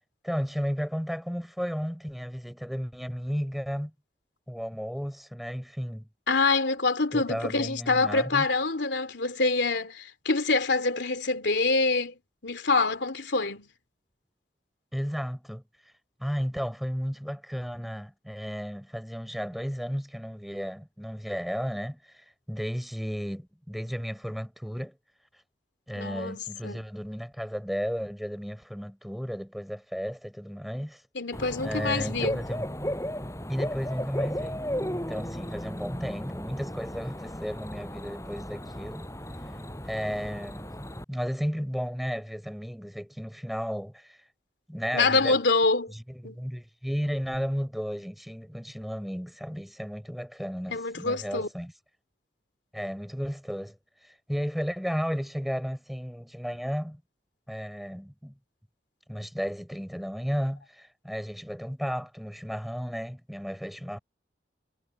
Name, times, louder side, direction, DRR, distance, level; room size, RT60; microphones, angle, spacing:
voice 1, 0.2-3.9 4.5-6.1 7.1-8.5 14.9-15.6 16.2-25.0 25.9-31.0 31.6-32.7 33.5-34.6 34.9-39.1 39.9-44.2 44.7-45.4 45.9-51.7 52.7-53.8 54.0-57.0 57.5-58.3 59.1-64.0, equal, ahead, 6.9 m, -34 dB
voice 2, 6.3-12.1 12.4-13.7 26.0-26.8 31.1-32.4 44.9-45.9 46.2-46.3 50.7-51.5, left 3 dB, 85° left, 3.0 m, -26 dB
Bird / Cricket, 31.3-41.0, equal, 15° left, 6.7 m, -35 dB
head